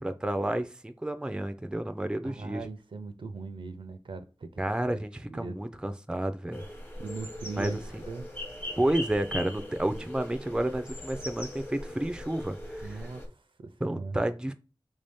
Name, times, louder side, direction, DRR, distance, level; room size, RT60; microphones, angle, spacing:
voice 1, 0.0-2.7 4.6-6.6 7.6-8.0 8.8-13.1 13.8-14.5, right 1 dB, 10° right, 0.4 m, -31 dB
voice 2, 2.2-4.5 4.9-5.0 5.3-5.7 7.0-8.4 12.8-14.2, right 3 dB, 80° right, 0.5 m, -40 dB
sound 1, 6.5-13.3, left 1 dB, 25° left, 0.9 m, -40 dB
3.3 x 2.7 x 3.4 m
wide cardioid pair, 65°, 9 cm